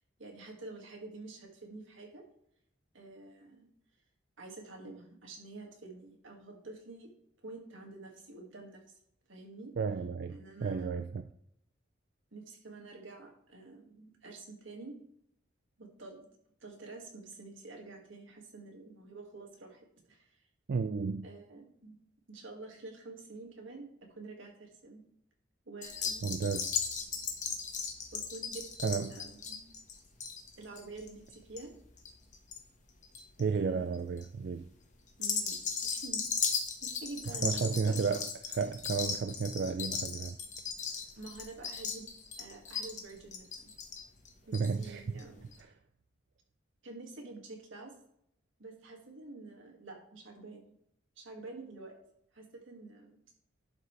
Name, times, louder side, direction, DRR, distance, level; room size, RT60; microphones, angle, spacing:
voice 1, 0.2-2.2 2.9-3.7 4.4-7.1 7.4-8.8 9.3-9.7 10.3-11.1 12.3-15.0 15.8-16.2 16.6-20.4 21.2-22.0 22.3-25.0 25.7-26.3 28.1-29.7 30.6-31.7 33.4-33.9 35.2-36.3 36.8-38.1 41.2-42.1 42.4-43.7 44.5-45.5 46.8-47.9 48.6-50.8 51.2-51.9 52.3-53.2, right 3 dB, 90° right, 2.1 m, -48 dB
voice 2, 9.8-10.4 10.6-11.3 20.7-21.3 26.2-26.8 28.8-29.1 33.4-34.7 37.4-40.4 44.5-45.0, right 5 dB, 60° right, 0.3 m, -32 dB
sound 1, 25.8-32.6 32.9-33.4 33.9-34.2 35.1-44.9 45.2-45.3 45.5-45.6, left 6 dB, 40° left, 1.3 m, -37 dB
11.5 x 5.3 x 3.3 m
head